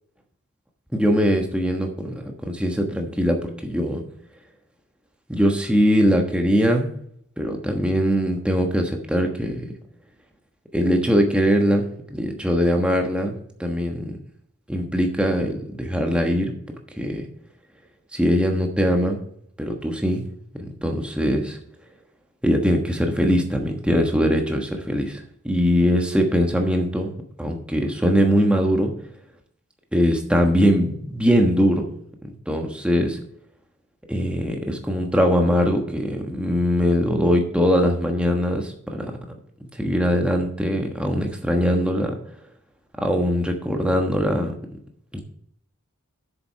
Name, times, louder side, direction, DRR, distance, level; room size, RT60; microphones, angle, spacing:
voice 1, 0.9-4.0 5.3-6.9 7.4-9.7 10.7-14.2 14.7-16.5 17.0-17.3 18.1-19.2 19.6-20.2 20.6-21.6 22.4-27.1 27.4-28.9 29.9-32.0 32.5-33.2 34.1-39.1 39.8-42.1 43.0-44.5 45.1-45.2, equal, 5° right, 3 dB, 1.2 m, -21 dB
8.0 x 7.0 x 5.7 m, 0.69 s
head